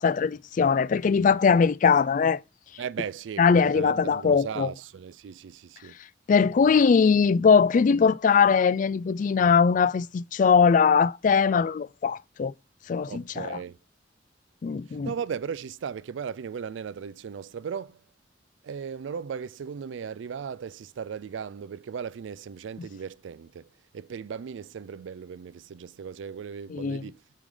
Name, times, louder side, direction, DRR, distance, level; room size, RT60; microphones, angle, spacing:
voice 1, 0.0-2.4 3.4-4.7 6.3-12.5 12.9-13.6 14.6-15.1 26.7-27.0, left 6 dB, 45° left, 0.3 m, -21 dB
voice 2, 2.8-6.0 13.1-13.8 14.9-18.0 18.6-23.7 23.9-27.2, right 7 dB, 85° right, 0.4 m, -37 dB
7.2 x 4.9 x 3.7 m
head